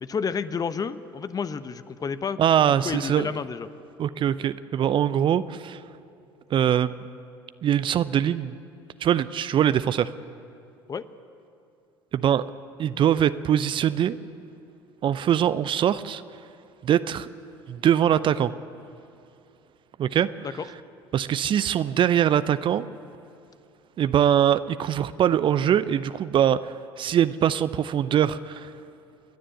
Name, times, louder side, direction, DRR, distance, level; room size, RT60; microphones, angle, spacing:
voice 1, 0.0-2.4 2.8-3.7 10.9-11.1 20.4-20.7, left 6 dB, 30° left, 13 dB, 0.9 m, -30 dB
voice 2, 2.4-3.3 4.0-5.8 6.5-7.0 7.6-8.6 9.0-10.1 12.1-12.4 12.8-14.2 15.0-16.2 16.8-17.3 17.7-18.5 20.0-20.3 21.1-22.9 24.0-28.7, right 10 dB, 40° right, 15 dB, 0.6 m, -22 dB
28.0 x 10.0 x 9.6 m, 2.6 s
hypercardioid pair, 65°, 13 cm